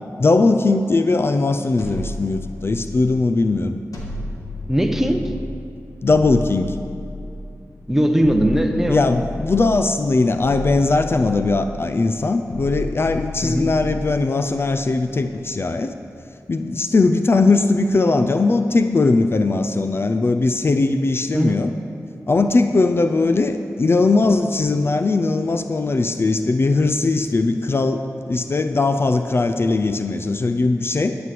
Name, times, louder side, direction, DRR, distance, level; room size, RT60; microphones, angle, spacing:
voice 1, 0.2-3.8 6.0-6.8 8.9-15.9 16.5-21.7 22.3-31.2, left 3 dB, 45° left, 8 dB, 0.5 m, -19 dB
sound 1, 1.8-3.1 3.9-5.6 6.1-7.5 8.2-9.8 10.4-11.8 12.5-14.1, left 1 dB, 80° left, 2.5 m, -32 dB
voice 2, 4.7-5.3 7.9-9.0 13.4-13.7 21.3-21.6, equal, 5° right, 4 dB, 1.0 m, -19 dB
12.5 x 8.0 x 7.7 m, 2.7 s
wide cardioid pair, 105°, 6 cm